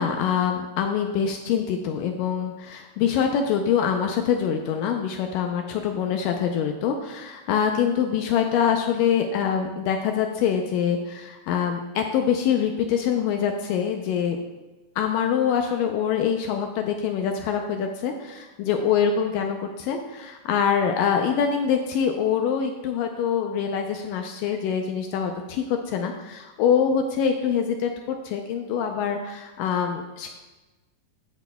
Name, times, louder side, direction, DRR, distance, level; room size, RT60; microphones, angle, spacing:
voice 1, 0.0-14.4 15.0-30.3, left 7 dB, 85° left, 4 dB, 1.9 m, -24 dB
15.0 x 6.2 x 2.2 m, 1.1 s
omnidirectional pair, 4.4 m